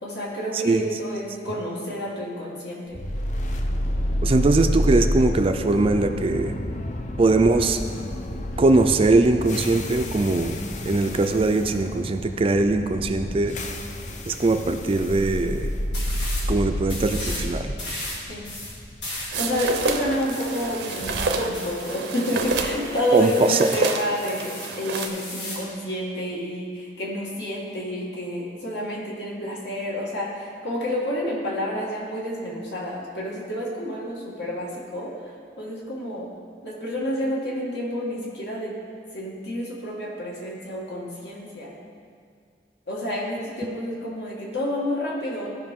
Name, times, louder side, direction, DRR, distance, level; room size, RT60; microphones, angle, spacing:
voice 1, 0.0-3.0 18.3-18.5 19.4-35.1 35.6-36.3 36.6-38.8 39.1-41.7 42.9-45.5, equal, 75° left, -3 dB, 1.8 m, -29 dB
voice 2, 0.5-0.8 4.2-6.5 7.2-7.8 8.6-10.6 10.9-13.6 14.3-15.7 16.5-17.7 23.1-23.7, right 2 dB, 30° right, 7 dB, 0.4 m, -21 dB
sound 1, 2.9-21.0, equal, 45° left, 0.6 m, -29 dB
sound 2, 15.9-16.5 16.9-17.5 17.8-22.7 23.1-23.8 24.2-25.7, left 1 dB, 90° left, 2.5 m, -36 dB
sound 3, 19.3-25.1, right 3 dB, 75° right, 0.6 m, -29 dB
14.0 x 5.3 x 3.6 m, 2.2 s
head